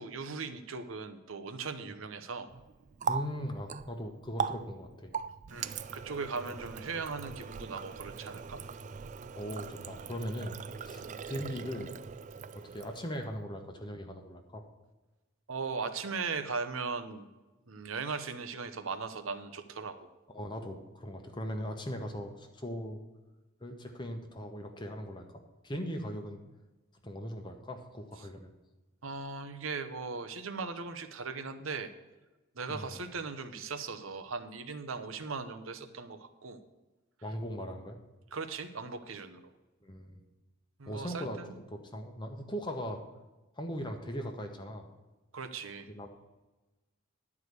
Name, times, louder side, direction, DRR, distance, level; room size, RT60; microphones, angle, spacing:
voice 1, 0.0-2.5 5.5-8.6 11.0-11.2 15.5-17.3 17.7-20.1 29.0-31.9 32.5-36.6 38.3-39.4 40.8-41.6 45.3-45.9, right 4 dB, 70° right, 9 dB, 0.9 m, -38 dB
Water tap faucet, 2.5-13.3, right 6 dB, 35° right, 0.3 m, -40 dB
voice 2, 3.1-5.1 6.5-6.6 9.4-12.0 12.5-14.6 20.3-23.0 23.6-25.3 25.6-26.4 27.0-28.5 32.7-32.9 37.2-38.0 39.8-40.2 40.9-43.0 43.6-44.9 45.9-46.1, equal, 20° left, 4 dB, 0.9 m, -39 dB
11.0 x 4.9 x 8.1 m, 1.1 s
head